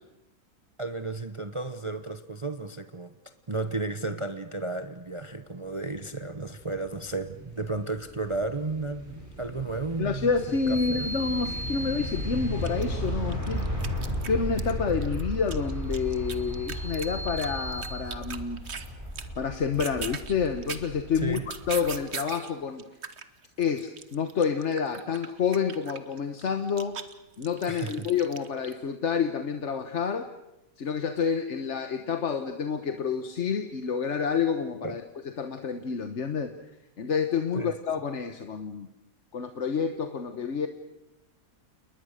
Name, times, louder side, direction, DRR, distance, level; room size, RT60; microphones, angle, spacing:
voice 1, 0.8-3.1 3.5-10.6 10.9-11.1 21.2-21.4 27.7-28.1 34.8-35.0 37.5-37.7, right 3 dB, 25° right, 9 dB, 0.7 m, -33 dB
sound 1, 6.5-22.0, equal, 10° right, 6.3 m, -35 dB
voice 2, 10.0-13.7 14.3-18.6 19.4-22.9 23.6-27.0 27.4-30.3 30.8-36.5 37.0-38.9 39.3-40.7, left 6 dB, 50° left, 7 dB, 1.3 m, -29 dB
sound 2, 10.4-12.9 15.9-18.0, equal, 10° left, 5.9 m, -39 dB
sound 3, 12.2-12.3 12.6-14.7 15.0-18.9 19.1-19.4 19.7-22.5 22.8-28.7, right 6 dB, 45° right, 1.3 m, -40 dB
29.5 x 20.0 x 6.6 m, 0.93 s
omnidirectional pair, 1.7 m